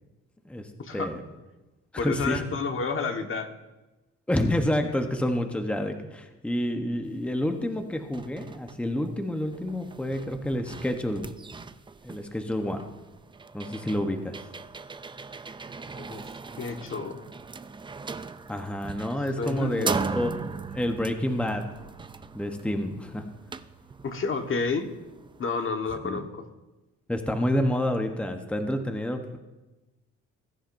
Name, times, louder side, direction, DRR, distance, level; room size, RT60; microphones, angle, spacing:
voice 1, 0.4-1.2 1.9-2.4 4.3-11.2 12.0-12.8 13.5-14.4 18.5-20.4 20.7-21.6 22.3-23.2 26.0-26.3 27.1-29.4, left 1 dB, 5° left, 5 dB, 1.0 m, -29 dB
voice 2, 2.0-3.5 16.0-16.2 16.6-17.2 19.4-20.3 24.0-24.9 25.4-26.4, left 4 dB, 45° left, 5 dB, 1.4 m, -30 dB
sound 1, 7.3-7.4 7.8-25.7, right 4 dB, 15° right, 0.4 m, -39 dB
20.5 x 10.0 x 2.6 m, 1.1 s
cardioid pair, 90°, 30 cm